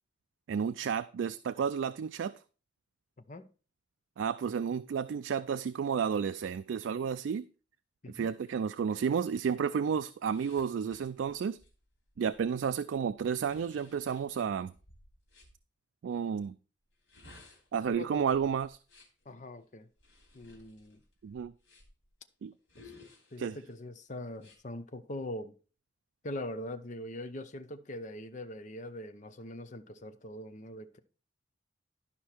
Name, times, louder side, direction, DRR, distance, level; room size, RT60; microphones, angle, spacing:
voice 1, 0.5-2.4 4.2-7.5 8.1-11.6 12.2-14.7 16.0-16.5 17.7-18.8 21.2-21.5 22.4-22.5 23.4-23.6, right 7 dB, 75° right, 0.3 m, -32 dB
sound 1, 10.3-15.6 16.9-19.2 20.0-22.1 22.7-23.7 24.4-24.6, left 2 dB, 65° left, 2.9 m, -58 dB
voice 2, 17.9-18.3 19.3-19.9 20.3-21.0 22.8-22.9 23.3-25.5 26.2-31.0, left 1 dB, 40° left, 0.7 m, -42 dB
11.5 x 5.5 x 4.4 m
head